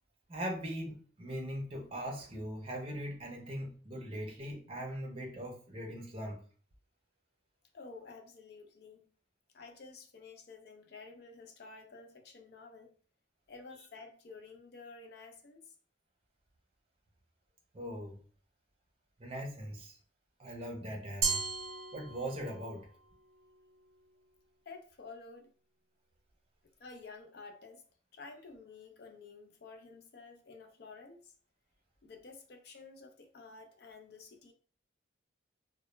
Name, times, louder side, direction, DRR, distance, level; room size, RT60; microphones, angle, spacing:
voice 1, 0.3-6.4 17.7-18.2 19.2-19.9 20.4-21.4 21.9-22.9, equal, 30° right, 0.5 m, -40 dB
voice 2, 7.7-9.1 9.5-12.9 13.5-15.7 24.7-25.5 26.8-27.8 28.1-31.3 32.0-34.5, left 4 dB, 55° left, 0.4 m, -51 dB
Glass, 21.2-22.7, right 5 dB, 80° right, 0.5 m, -34 dB
2.1 x 2.0 x 3.0 m
head